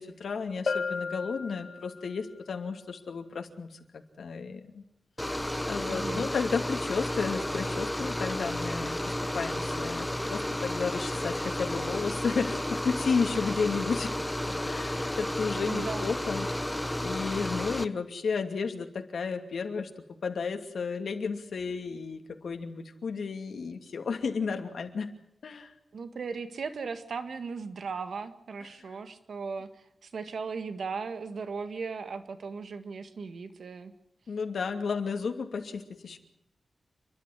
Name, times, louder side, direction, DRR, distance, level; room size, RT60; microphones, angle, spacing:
voice 1, 0.0-4.8 5.2-14.1 14.6-19.9 20.2-25.1 25.4-25.7 34.3-36.2, left 5 dB, 75° left, 5 dB, 2.6 m, -33 dB
Bell, 0.7-2.2, left 5 dB, 60° left, 1.0 m, -34 dB
sound 1, 5.2-17.8, left 1 dB, 10° left, 0.9 m, -32 dB
voice 2, 5.9-6.3 15.7-16.1 25.9-33.9, right 5 dB, 70° right, 10 dB, 1.8 m, -37 dB
29.5 x 12.0 x 9.9 m, 0.77 s
wide cardioid pair, 135°, 0 cm